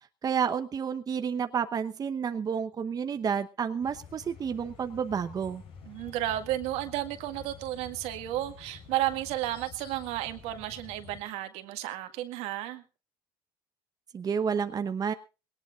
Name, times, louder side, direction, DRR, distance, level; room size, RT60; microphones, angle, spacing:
voice 1, 0.2-5.6 14.1-15.1, right 7 dB, 35° right, 8 dB, 1.0 m, -30 dB
sound 1, 3.8-11.2, left 6 dB, 60° left, 5.6 m, -49 dB
voice 2, 5.9-12.8, right 14 dB, 75° right, 7 dB, 1.9 m, -33 dB
20.5 x 18.5 x 2.5 m, 0.32 s
supercardioid pair, 90°, 11 cm